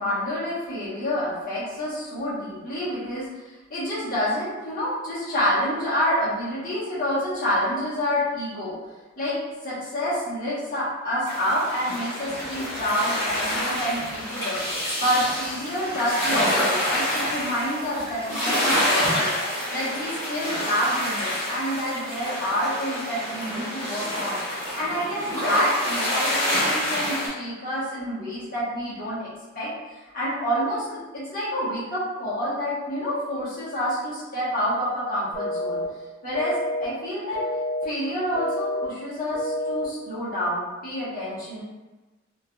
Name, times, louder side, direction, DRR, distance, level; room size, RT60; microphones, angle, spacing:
voice 1, 0.0-8.7 9.2-9.4 9.6-14.6 15.0-19.3 19.7-29.3 29.5-35.8 36.2-36.5 36.8-37.4 37.8-41.6, equal, 45° left, -9 dB, 1.4 m, -28 dB
sound 1, 11.3-27.3, left 1 dB, 15° left, 1.3 m, -27 dB
sound 2, 35.3-35.8 36.3-36.8 37.3-37.8 38.3-38.8 39.3-39.8, left 1 dB, 75° left, 1.0 m, -28 dB
3.7 x 2.7 x 2.4 m, 1.2 s
head